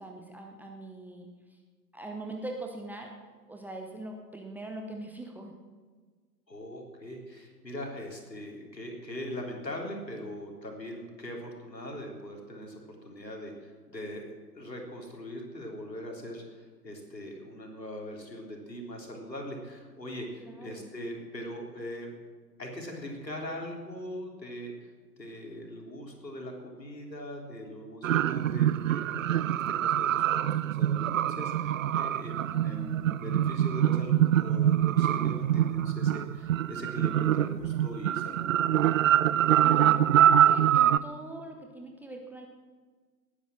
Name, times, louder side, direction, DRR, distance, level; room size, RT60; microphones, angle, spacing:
voice 1, 0.0-1.6 1.9-3.1 3.5-5.5 20.4-20.9 32.5-33.2 39.6-42.5, right 2 dB, 5° right, 1 dB, 0.6 m, -42 dB
voice 2, 6.5-14.3 14.5-22.1 22.6-24.9 25.2-38.5, equal, 80° left, 1 dB, 3.8 m, -41 dB
sound 1, 28.0-41.0, right 11 dB, 55° right, 0.6 m, -25 dB
19.0 x 10.0 x 6.4 m, 1.5 s
figure-of-eight pair, 105°, 50 cm